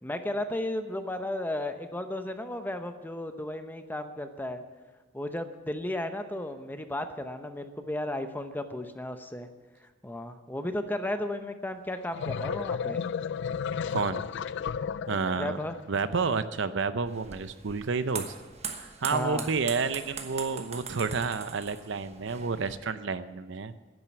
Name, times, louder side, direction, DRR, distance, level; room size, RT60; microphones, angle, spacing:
voice 1, 0.0-4.6 5.1-9.5 10.0-13.0 15.3-15.8 19.1-19.5, left 1 dB, 10° left, 8 dB, 0.8 m, -34 dB
sound 1, 11.9-15.8, left 6 dB, 65° left, 0.3 m, -33 dB
voice 2, 13.9-14.3 15.1-15.6 15.9-18.3 18.8-23.7, right 4 dB, 70° right, 12 dB, 0.6 m, -30 dB
sound 2, 17.1-22.8, right 6 dB, 35° right, 1.1 m, -41 dB
10.5 x 9.3 x 9.4 m, 1.3 s
head